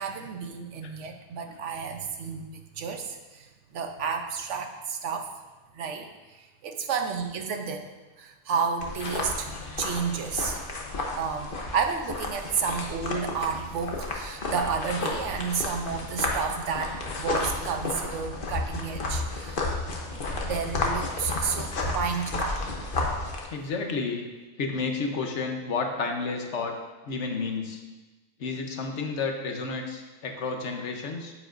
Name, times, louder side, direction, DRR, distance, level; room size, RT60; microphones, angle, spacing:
voice 1, 0.0-2.5 2.8-3.5 3.7-5.3 5.7-6.1 6.6-7.8 8.2-9.5 9.8-10.6 11.2-16.9 17.2-19.7 20.1-22.6, right 6 dB, 85° right, 5 dB, 1.1 m, -31 dB
sound 1, 8.8-23.4, left 2 dB, 50° left, 1.1 m, -32 dB
voice 2, 20.1-20.5 23.5-24.2 24.6-26.7 27.0-27.8 28.4-31.3, left 4 dB, 80° left, 3 dB, 1.2 m, -31 dB
9.5 x 8.2 x 2.6 m, 1.2 s
omnidirectional pair, 1.2 m